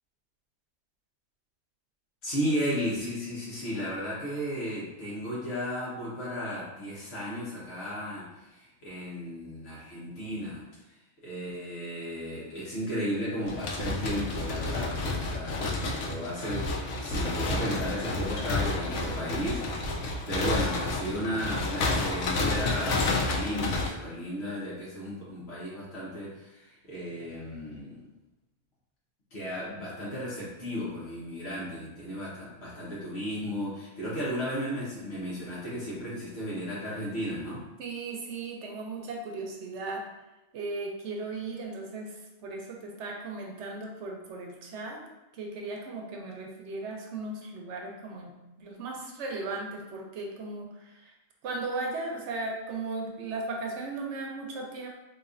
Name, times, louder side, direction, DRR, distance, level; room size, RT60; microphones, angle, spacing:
voice 1, 2.2-16.7 17.0-28.1 29.3-37.6, equal, 65° left, -8 dB, 1.2 m, -34 dB
sound 1, 13.4-23.9, left 2 dB, 90° left, 0.9 m, -30 dB
voice 2, 37.8-40.0 40.5-45.0 45.3-51.1 51.4-54.9, right 3 dB, 80° right, 0 dB, 0.9 m, -37 dB
4.0 x 2.8 x 2.5 m, 1.0 s
omnidirectional pair, 1.2 m